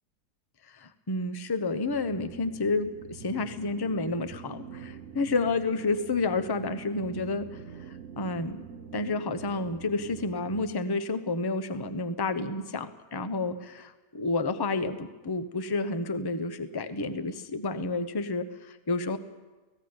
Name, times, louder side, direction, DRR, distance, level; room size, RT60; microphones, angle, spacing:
voice 1, 0.7-7.6 8.2-8.6 8.9-19.2, left 3 dB, 20° left, 10 dB, 0.7 m, -30 dB
sound 1, 1.8-10.7, right 6 dB, 50° right, 1.1 m, -45 dB
17.5 x 16.0 x 9.6 m, 1.2 s
omnidirectional pair, 1.8 m